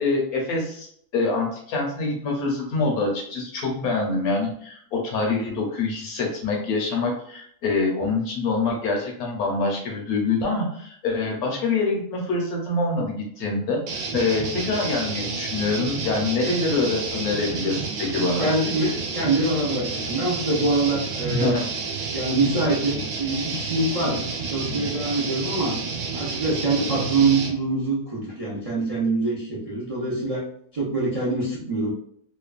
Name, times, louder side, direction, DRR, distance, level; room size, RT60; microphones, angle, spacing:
voice 1, 0.0-18.5 21.3-21.7, left 3 dB, 70° left, 0 dB, 1.2 m, -25 dB
sound 1, 13.9-27.6, right 4 dB, 85° right, 1.2 m, -30 dB
voice 2, 18.1-21.6 22.1-25.8 26.1-30.5 30.7-31.9, right 2 dB, 50° right, -7 dB, 0.4 m, -24 dB
3.0 x 2.2 x 2.3 m, 0.65 s
omnidirectional pair, 1.7 m